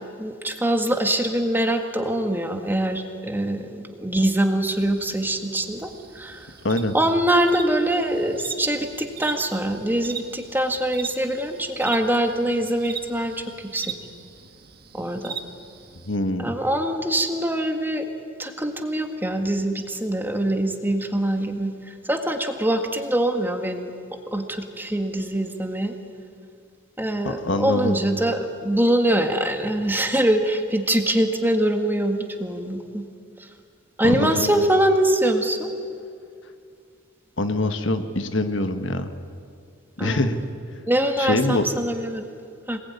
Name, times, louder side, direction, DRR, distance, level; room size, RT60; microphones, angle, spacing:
voice 1, 0.0-6.5 6.9-13.9 14.9-15.4 16.4-18.1 18.4-21.7 22.1-23.9 24.3-25.9 27.0-33.0 34.0-35.7 40.0-40.3 40.9-42.3 42.7-42.8, right 1 dB, 10° right, 5 dB, 1.8 m, -23 dB
sound 1, 4.7-16.2, right 6 dB, 50° right, 1.6 m, -40 dB
voice 2, 6.6-6.9 16.1-16.5 27.2-28.0 34.0-34.5 37.4-39.1 40.0-40.4 41.2-41.6, left 2 dB, 70° left, 8 dB, 1.6 m, -24 dB
25.5 x 20.5 x 9.7 m, 2.3 s
head